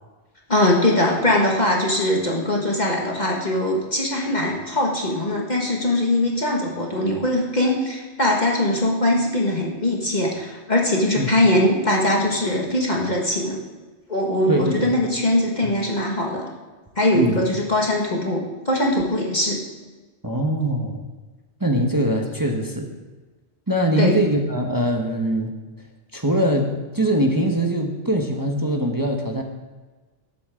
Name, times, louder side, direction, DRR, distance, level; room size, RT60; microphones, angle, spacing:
voice 1, 0.5-13.6 14.1-16.5 17.0-19.6 24.0-24.2, left 1 dB, 40° left, -2 dB, 1.8 m, -21 dB
voice 2, 14.5-14.9 15.6-15.7 17.1-17.4 20.2-21.1 21.6-22.9 23.7-25.5 26.1-29.4, right 1 dB, 20° right, 2 dB, 1.1 m, -22 dB
19.5 x 8.3 x 3.7 m, 1.3 s
omnidirectional pair, 1.2 m